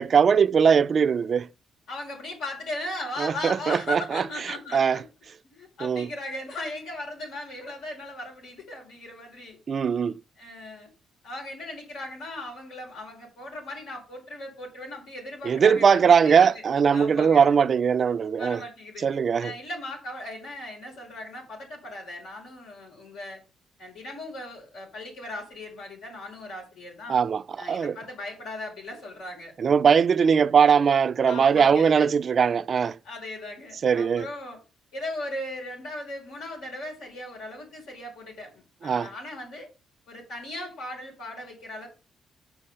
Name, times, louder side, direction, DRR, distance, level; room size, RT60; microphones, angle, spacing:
voice 1, 0.0-1.5 3.2-4.2 4.7-5.0 5.8-6.1 9.7-10.2 15.4-18.6 19.0-19.5 27.1-28.0 29.6-33.0 33.8-34.3 38.8-39.1, right 6 dB, 50° right, 0.4 m, -20 dB
voice 2, 1.9-5.0 5.4-9.6 10.4-10.9 11.2-16.7 16.9-17.5 18.4-19.1 19.4-23.4 23.8-27.2 27.6-29.5 31.3-32.1 33.0-34.6 34.9-39.7 40.1-41.9, left 1 dB, 85° left, 5.0 m, -38 dB
6.5 x 4.5 x 6.7 m
cardioid pair, 90°, 0 cm